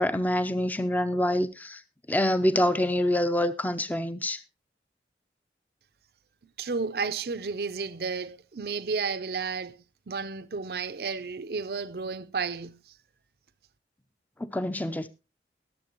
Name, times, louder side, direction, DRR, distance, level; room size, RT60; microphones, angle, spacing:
voice 1, 0.0-1.8 2.1-4.4 14.4-15.1, left 1 dB, 10° left, 0.6 m, -26 dB
voice 2, 6.6-12.9, right 5 dB, 65° right, 0.6 m, -32 dB
21.5 x 7.5 x 3.0 m
head